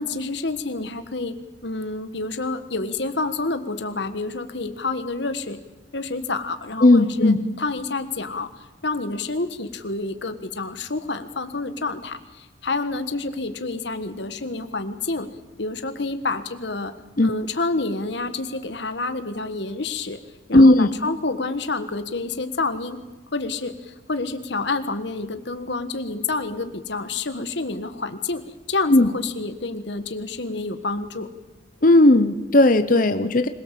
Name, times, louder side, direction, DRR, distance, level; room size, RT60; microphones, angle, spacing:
voice 1, 0.0-1.4 1.6-5.6 5.9-8.5 8.8-15.3 15.6-16.9 17.2-20.2 20.5-23.0 23.3-28.4 28.7-31.3, left 3 dB, 65° left, 10 dB, 1.5 m, -28 dB
voice 2, 6.8-7.4 17.2-17.3 20.5-20.9 28.9-29.1 31.8-33.5, left 2 dB, 45° left, 10 dB, 0.9 m, -15 dB
26.0 x 18.0 x 7.6 m, 1.1 s
head